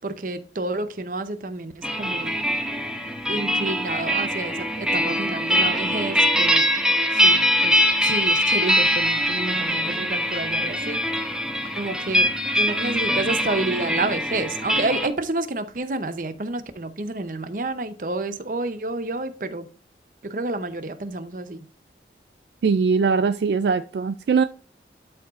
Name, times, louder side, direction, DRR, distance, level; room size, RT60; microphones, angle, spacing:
voice 1, 0.0-2.4 3.3-6.7 7.1-11.0 11.8-12.3 12.6-19.7 20.3-21.7, right 2 dB, 50° right, 0.7 m, -29 dB
sound 1, 1.8-15.1, equal, 5° right, 0.7 m, -22 dB
voice 2, 22.6-24.4, right 5 dB, 75° right, 0.3 m, -21 dB
12.0 x 4.7 x 2.5 m
head